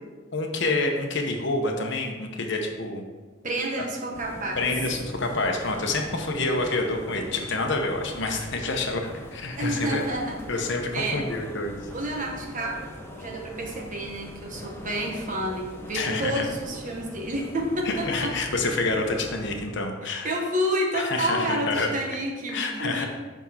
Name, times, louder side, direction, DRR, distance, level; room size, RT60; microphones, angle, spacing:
voice 1, 0.3-3.0 4.6-10.0 10.5-11.8 15.9-16.5 17.8-20.3 20.9-21.9 22.5-23.1, left 2 dB, 60° left, 3 dB, 0.9 m, -27 dB
voice 2, 3.4-4.6 9.6-11.2 11.9-18.4 20.0-23.1, right 1 dB, 40° right, 0 dB, 1.2 m, -30 dB
sound 1, 4.1-19.7, equal, 10° left, 0.7 m, -41 dB
6.3 x 6.0 x 4.3 m, 1.3 s
head